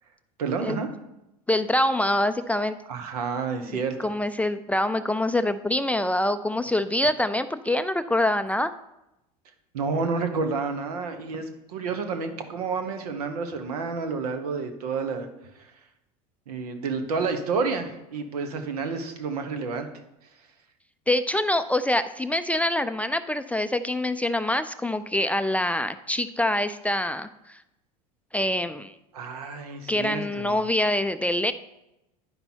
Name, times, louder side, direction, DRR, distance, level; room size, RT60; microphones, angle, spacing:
voice 1, 0.4-0.9 2.9-4.1 9.7-15.3 15.6-15.7 16.5-19.9 29.1-30.7, right 4 dB, 80° right, 7 dB, 1.1 m, -30 dB
voice 2, 1.5-2.8 3.7-8.7 21.1-27.6 28.3-28.9 29.9-31.5, left 1 dB, 5° left, 10 dB, 0.3 m, -25 dB
10.0 x 5.3 x 4.5 m, 0.91 s
hypercardioid pair, 85°, 19 cm